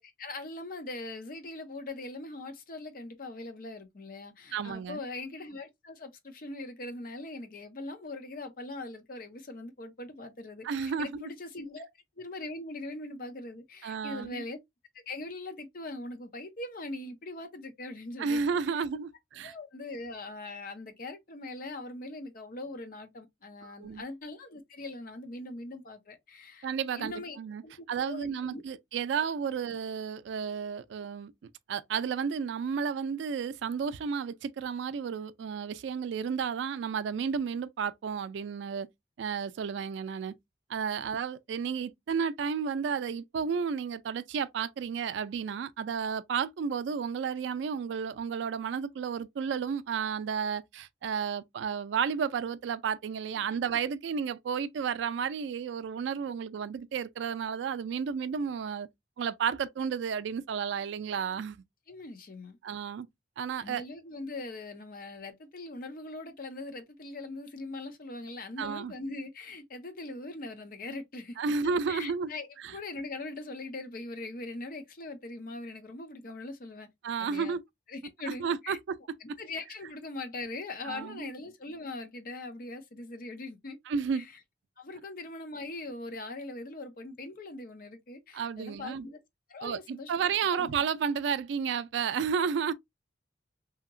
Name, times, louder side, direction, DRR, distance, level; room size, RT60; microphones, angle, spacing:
voice 1, 0.0-11.9 12.2-14.6 15.1-18.4 18.7-18.8 19.4-27.4 27.6-28.6 61.9-62.6 63.6-71.4 71.9-76.9 77.2-77.5 77.9-78.8 79.2-83.8 84.1-84.3 84.8-89.2 89.5-90.7, left 2 dB, 50° left, 0.6 m, -41 dB
voice 2, 4.5-5.0 10.6-11.3 13.8-14.4 18.2-19.5 23.6-24.0 26.6-27.6 27.9-38.9 39.2-40.3 40.7-58.9 59.2-61.6 62.6-63.1 63.4-63.8 68.6-68.9 71.4-72.3 72.6-72.7 77.0-77.6 78.3-78.8 80.8-81.3 83.9-84.3 88.3-89.1 89.6-92.7, right 6 dB, 70° right, 0.3 m, -32 dB
2.8 x 2.7 x 2.5 m
head